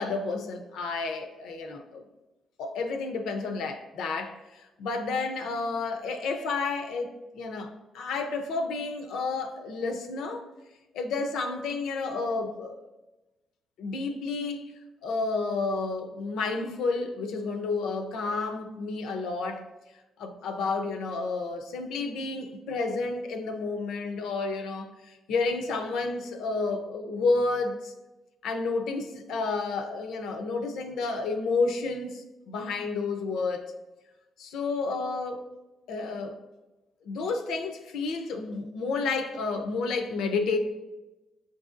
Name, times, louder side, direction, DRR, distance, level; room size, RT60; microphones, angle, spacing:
voice 1, 0.0-2.0 2.6-10.5 10.9-12.8 13.8-14.6 15.0-19.6 20.2-27.9 28.4-33.6 34.4-35.4 35.9-36.4 37.0-40.6, left 3 dB, 80° left, 6 dB, 0.5 m, -31 dB
7.8 x 2.6 x 2.5 m, 1.1 s
cardioid pair, 90°, 0 cm